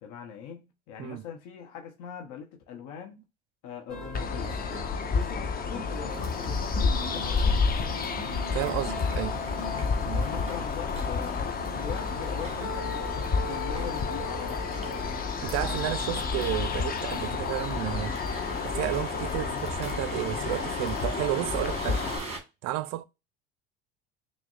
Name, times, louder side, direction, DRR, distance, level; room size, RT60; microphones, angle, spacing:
voice 1, 0.0-3.2 3.6-4.6 5.1-7.7 9.6-14.7, left 7 dB, 60° left, 0.8 m, -41 dB
sound 1, 3.9-20.7, left 2 dB, ahead, 1.3 m, -40 dB
sound 2, 4.1-22.2, left 5 dB, 25° left, 0.6 m, -30 dB
sound 3, 6.1-22.4, right 4 dB, 20° right, 1.3 m, -42 dB
voice 2, 8.5-9.4 10.0-10.2 15.4-18.2 18.6-22.0 22.6-23.0, right 14 dB, 50° right, 0.5 m, -32 dB
5.9 x 2.1 x 2.4 m
hypercardioid pair, 70°, 35 cm